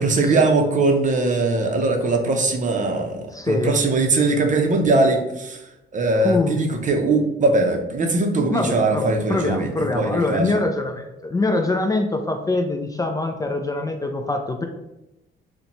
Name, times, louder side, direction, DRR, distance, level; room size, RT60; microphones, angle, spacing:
voice 1, 0.0-5.6 5.9-10.6, right 3 dB, 40° right, 3 dB, 0.6 m, -21 dB
voice 2, 3.3-3.8 6.2-6.6 8.5-14.6, left 2 dB, 20° left, 3 dB, 0.3 m, -24 dB
3.8 x 2.2 x 2.8 m, 0.93 s
cardioid pair, 90°, 20 cm